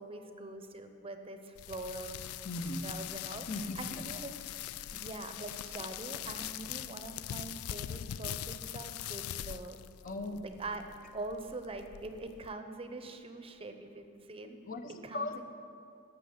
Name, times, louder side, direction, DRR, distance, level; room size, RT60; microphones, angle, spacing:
voice 1, 0.0-2.2 2.7-4.6 4.9-9.8 10.6-14.6 15.0-15.4, right 2 dB, 25° right, 7 dB, 0.8 m, -44 dB
sound 1, 1.6-12.5, left 11 dB, 85° left, 0.3 m, -42 dB
voice 2, 2.4-2.8 3.5-4.0 10.0-10.5 14.7-15.4, left 2 dB, 40° left, 6 dB, 0.8 m, -38 dB
12.5 x 6.4 x 8.0 m, 2.5 s
head